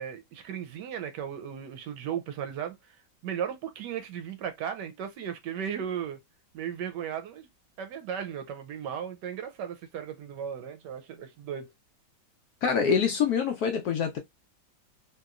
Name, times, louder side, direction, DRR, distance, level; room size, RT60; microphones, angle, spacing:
voice 1, 0.0-3.0 3.2-6.2 6.5-7.5 7.8-11.7, right 8 dB, 75° right, 1.1 m, -36 dB
voice 2, 12.6-14.2, left 6 dB, 70° left, 0.9 m, -25 dB
2.9 x 2.9 x 2.3 m
omnidirectional pair, 2.0 m